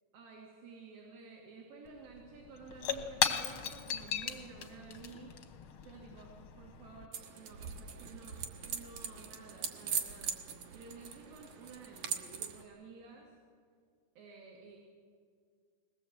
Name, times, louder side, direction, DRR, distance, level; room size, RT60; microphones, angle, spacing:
voice 1, 0.1-5.3 5.8-10.4 10.7-13.3 14.2-14.8, right 4 dB, 85° right, -1 dB, 4.1 m, -52 dB
Shatter / Crushing, 1.9-2.0 2.2-7.1, left 7 dB, 70° left, 1.2 m, -37 dB
sound 1, 7.1-12.6, right 7 dB, 65° right, 2.5 m, -41 dB
21.0 x 18.5 x 7.8 m, 2.1 s
omnidirectional pair, 4.0 m